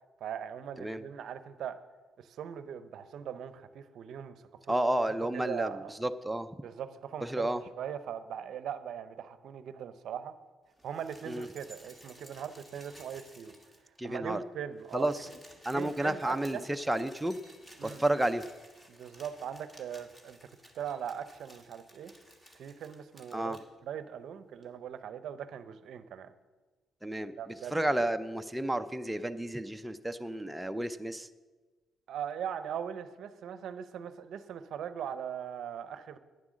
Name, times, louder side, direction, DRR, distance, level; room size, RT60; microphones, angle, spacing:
voice 1, 0.2-1.8 2.2-4.8 5.3-5.9 6.6-10.4 10.8-13.5 14.0-15.4 15.7-16.7 17.8-18.0 18.9-20.5 20.7-22.1 22.5-26.3 27.4-27.8 32.1-36.2, right 8 dB, 70° right, 12 dB, 0.6 m, -40 dB
voice 2, 4.7-6.5 7.2-7.6 11.3-11.5 14.0-14.4 14.9-15.3 15.7-17.4 17.8-18.4 23.3-23.6 27.0-27.3 27.7-31.3, right 1 dB, 5° right, 8 dB, 0.4 m, -31 dB
sound 1, 10.7-14.0 14.3-14.4 14.6-23.7 24.6-24.7, equal, 15° left, 1.6 m, -56 dB
9.6 x 7.6 x 6.2 m, 1.3 s
cardioid pair, 90°, 0 cm